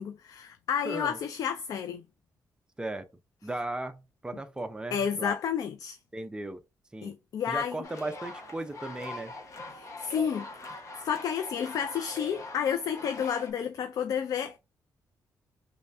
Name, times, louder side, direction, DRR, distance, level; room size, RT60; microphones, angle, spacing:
voice 1, 0.0-2.0 4.9-6.0 7.0-7.8 9.7-10.5 11.0-14.6, left 8 dB, 65° left, 0.4 m, -31 dB
voice 2, 0.8-1.2 2.8-3.1 3.4-5.4 6.1-6.6 6.9-7.1 7.5-9.3, right 2 dB, 10° right, 0.5 m, -36 dB
sound 1, 7.8-13.5, left 2 dB, 50° left, 0.9 m, -42 dB
3.1 x 2.6 x 3.4 m
wide cardioid pair, 145°, 7 cm